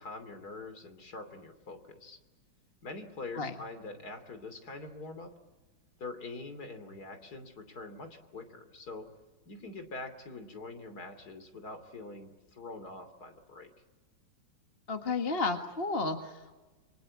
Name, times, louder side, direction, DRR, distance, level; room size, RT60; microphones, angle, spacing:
voice 1, 0.0-2.2 2.8-5.3 6.0-9.1 9.4-13.7, left 3 dB, 50° left, 9 dB, 3.3 m, -44 dB
voice 2, 14.9-16.6, left 3 dB, 30° left, 5 dB, 1.7 m, -32 dB
28.5 x 24.0 x 8.5 m, 1.2 s
omnidirectional pair, 2.1 m